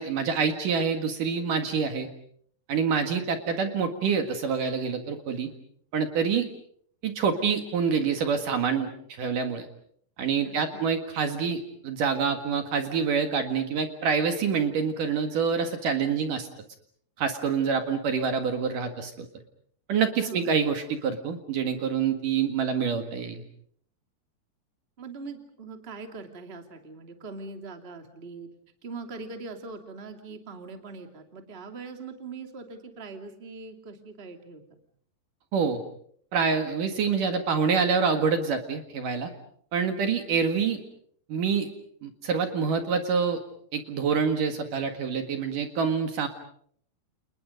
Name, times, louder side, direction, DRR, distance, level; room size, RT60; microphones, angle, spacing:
voice 1, 0.0-2.1 2.7-5.5 5.9-6.5 7.0-8.9 9.2-9.7 10.2-16.5 17.2-19.3 19.9-23.4 35.5-35.8 36.3-39.3 39.7-40.8 41.3-41.7 42.0-43.4 43.7-46.3, right 6 dB, 60° right, 6 dB, 3.1 m, -26 dB
voice 2, 10.4-10.9 20.3-20.6 25.0-28.5 28.8-34.6, right 4 dB, 20° right, 5 dB, 2.1 m, -41 dB
30.0 x 29.0 x 5.3 m, 0.63 s
omnidirectional pair, 4.8 m